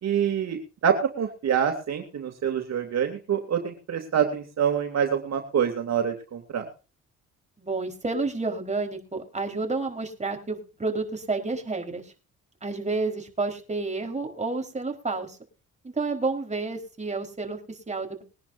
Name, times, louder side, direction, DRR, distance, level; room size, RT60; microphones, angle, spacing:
voice 1, 0.0-6.6, right 8 dB, 60° right, 5 dB, 2.8 m, -26 dB
voice 2, 7.6-12.1 12.6-15.4 15.8-18.2, right 3 dB, 25° right, 4 dB, 4.4 m, -30 dB
22.0 x 10.5 x 2.7 m, 0.35 s
cardioid pair, 90°, 30 cm